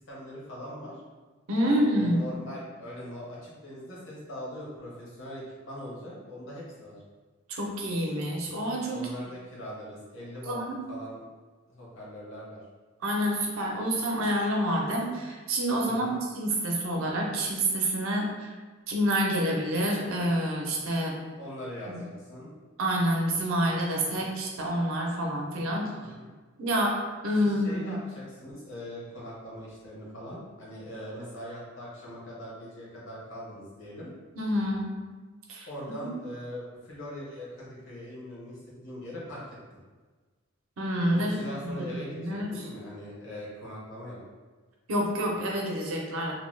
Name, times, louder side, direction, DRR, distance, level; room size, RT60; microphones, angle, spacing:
voice 1, 0.1-1.0 1.6-7.0 8.9-10.5 10.9-11.2 11.7-12.6 15.9-16.2 21.2-22.5 25.7-26.3 27.4-34.1 35.7-39.4 41.1-44.2, equal, 65° left, -6 dB, 1.0 m, -41 dB
voice 2, 1.5-2.2 7.5-9.0 10.5-10.8 13.0-18.5 18.9-21.1 21.9-22.0 22.8-25.9 26.6-28.0 34.4-34.9 35.5-35.7 40.8-41.3 41.6-41.7 42.1-42.6 44.9-46.3, equal, 75° right, -1 dB, 0.6 m, -28 dB
2.8 x 2.2 x 3.1 m, 1.4 s
head